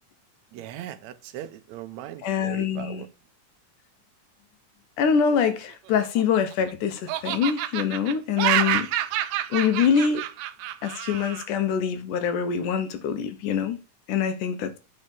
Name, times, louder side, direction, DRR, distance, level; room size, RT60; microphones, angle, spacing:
voice 1, 0.5-3.1, right 11 dB, 75° right, 1.9 m, -39 dB
voice 2, 2.2-3.0 5.0-8.9 9.5-10.3 10.8-13.8 14.1-14.8, left 7 dB, 80° left, 2.6 m, -24 dB
Laughter, 5.9-6.7 7.1-11.5, right 13 dB, 90° right, 2.3 m, -28 dB
9.1 x 4.3 x 6.8 m
omnidirectional pair, 3.7 m